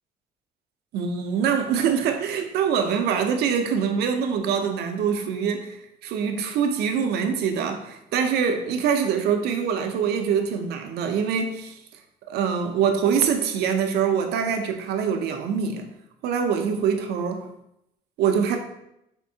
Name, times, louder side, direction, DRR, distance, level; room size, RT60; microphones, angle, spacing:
voice 1, 0.9-11.8 12.3-15.9 16.2-17.5 18.2-18.6, right 7 dB, 75° right, 0.5 m, -24 dB
4.3 x 2.6 x 2.6 m
cardioid pair, 110°, 17 cm